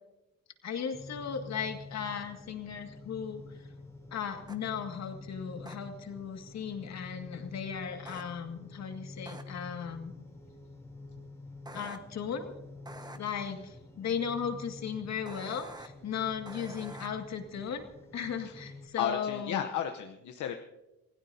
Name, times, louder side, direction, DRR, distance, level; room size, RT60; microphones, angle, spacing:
voice 1, 0.6-3.4 4.1-10.1 11.7-12.5 13.1-17.8 18.1-19.6, left 7 dB, 60° left, 5 dB, 2.0 m, -36 dB
sound 1, 0.9-18.9, left 3 dB, 10° left, 3.2 m, -48 dB
sound 2, 4.5-4.6 5.7-5.8 8.1-8.2 9.3-9.4 11.7-12.0 12.9-13.2 15.3-15.9 16.5-17.1, right 2 dB, 15° right, 1.3 m, -46 dB
voice 2, 13.0-13.5 18.4-18.6 19.0-20.5, left 9 dB, 75° left, 5 dB, 1.0 m, -34 dB
27.0 x 16.5 x 2.8 m, 1.0 s
cardioid pair, 90°, 30 cm